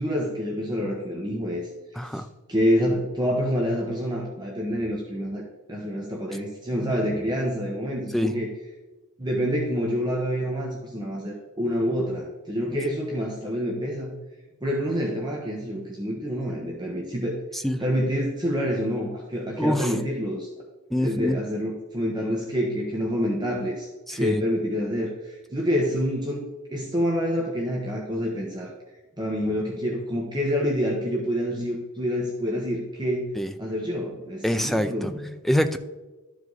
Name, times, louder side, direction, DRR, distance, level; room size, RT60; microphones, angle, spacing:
voice 1, 0.0-2.2 2.5-5.4 5.7-8.5 9.2-14.1 14.6-20.5 21.0-28.7 29.2-33.3 33.6-35.3, equal, 20° right, -1 dB, 1.0 m, -27 dB
voice 2, 2.0-2.3 8.1-8.3 17.5-17.8 19.6-19.9 20.9-21.4 24.1-24.4 33.4-33.5 34.4-35.1 35.4-35.8, equal, ahead, 8 dB, 0.4 m, -25 dB
12.5 x 4.9 x 4.0 m, 1.2 s
head